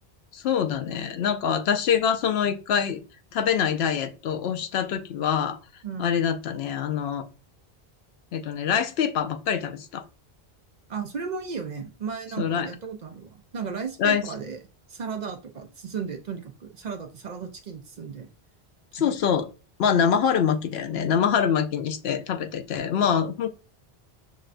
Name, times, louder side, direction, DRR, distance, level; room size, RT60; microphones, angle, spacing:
voice 1, 0.3-3.0 3.3-5.6 6.0-7.2 8.3-10.0 12.4-12.7 14.0-14.2 18.9-19.5 19.8-23.5, left 7 dB, 90° left, 0.8 m, -25 dB
voice 2, 10.9-14.6 14.9-18.3 19.0-19.1, right 6 dB, 55° right, 0.6 m, -35 dB
6.2 x 2.2 x 2.4 m
omnidirectional pair, 1.0 m